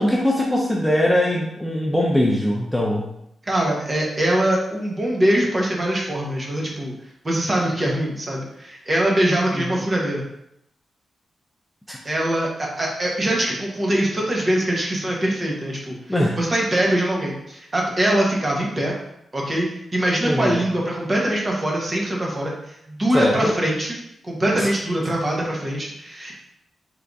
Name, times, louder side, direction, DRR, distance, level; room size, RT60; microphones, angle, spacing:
voice 1, 0.0-3.1 9.5-9.7 11.9-12.0 16.1-16.4 20.2-20.7 23.1-23.5 24.6-24.7, left 1 dB, 5° left, -3 dB, 0.5 m, -21 dB
voice 2, 3.4-6.9 7.2-10.2 12.0-15.9 16.4-18.9 19.3-24.0 24.2-26.3, right 1 dB, 30° right, -3 dB, 1.1 m, -23 dB
4.6 x 3.3 x 2.6 m, 0.78 s
wide cardioid pair, 115°, 0 cm